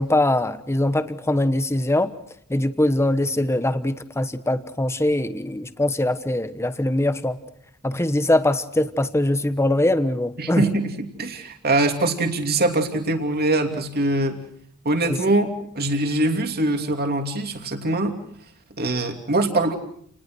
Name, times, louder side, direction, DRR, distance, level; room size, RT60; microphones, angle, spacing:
voice 1, 0.0-2.1 2.5-7.4 7.8-10.6 15.1-15.2, left 1 dB, 10° left, 11 dB, 1.2 m, -22 dB
voice 2, 10.4-14.4 14.8-15.5 15.7-18.2 18.8-19.8, right 2 dB, 45° right, 5 dB, 2.9 m, -23 dB
29.5 x 20.0 x 6.3 m, 0.66 s
head